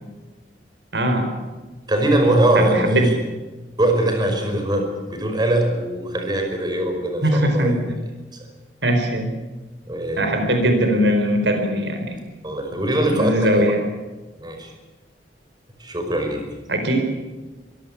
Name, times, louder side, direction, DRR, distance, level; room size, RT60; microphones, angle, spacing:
voice 1, 0.9-1.3 2.5-3.2 7.2-8.0 8.8-9.3 10.2-12.2 13.1-13.9 16.7-17.0, equal, 80° right, 5 dB, 4.4 m, -20 dB
voice 2, 1.9-3.1 3.8-7.7 9.9-10.4 12.4-13.7 14.4-14.7 15.8-16.4, right 1 dB, 25° right, 4 dB, 5.3 m, -21 dB
24.0 x 17.5 x 8.5 m, 1.2 s
head